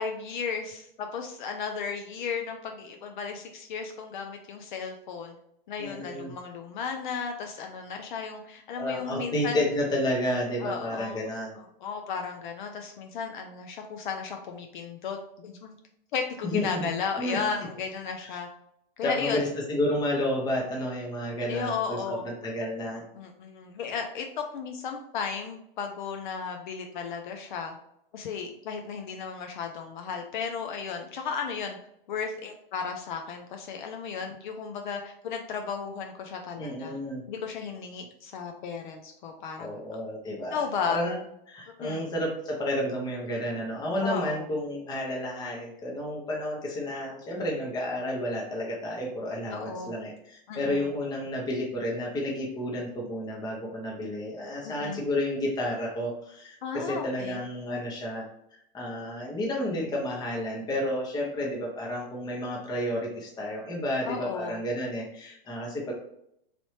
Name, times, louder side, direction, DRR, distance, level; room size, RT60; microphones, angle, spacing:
voice 1, 0.0-5.4 5.7-9.6 10.6-11.2 11.8-15.8 16.1-18.5 19.0-19.4 21.5-22.3 23.1-27.8 28.1-31.8 32.1-37.0 37.3-39.8 40.5-41.0 41.8-42.1 44.0-44.4 49.5-49.9 50.5-50.9 54.6-55.0 56.6-57.4 64.1-64.6, left 6 dB, 55° left, 4 dB, 0.5 m, -34 dB
voice 2, 5.8-6.3 8.7-11.6 16.4-16.9 17.2-17.4 18.2-18.4 19.0-23.0 36.6-37.2 39.6-41.2 41.5-65.9, left 1 dB, 15° left, -2 dB, 0.8 m, -31 dB
3.2 x 2.5 x 3.2 m, 0.76 s
hypercardioid pair, 115°, 29 cm